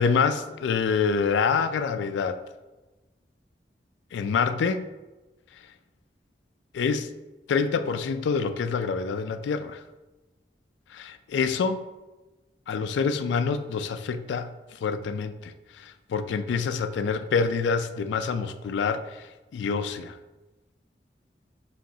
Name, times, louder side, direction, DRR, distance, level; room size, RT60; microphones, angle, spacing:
voice 1, 0.0-2.4 4.1-4.8 6.7-7.1 7.5-9.8 10.9-11.8 12.7-14.5 14.8-19.0 19.5-20.2, left 5 dB, 85° left, 10 dB, 0.3 m, -26 dB
5.3 x 2.9 x 2.7 m, 1.1 s
head